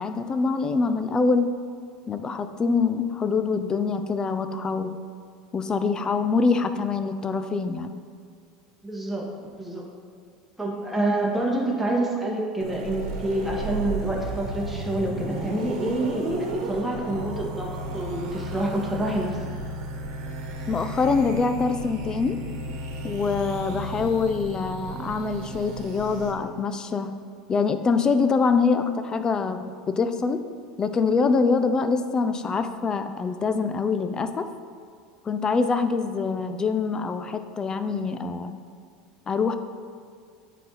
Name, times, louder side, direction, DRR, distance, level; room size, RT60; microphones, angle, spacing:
voice 1, 0.0-1.5 2.1-5.0 5.5-8.0 20.7-22.4 23.0-27.1 27.5-30.4 30.8-34.5 35.3-38.6 39.3-39.6, left 4 dB, 30° left, 9 dB, 0.5 m, -24 dB
voice 2, 8.8-9.3 9.6-9.9 10.6-19.4, right 1 dB, 5° right, -3 dB, 1.8 m, -27 dB
sound 1, 12.6-26.3, right 2 dB, 65° right, 1.2 m, -34 dB
9.2 x 4.2 x 4.2 m, 2.3 s
hypercardioid pair, 85°, 3 cm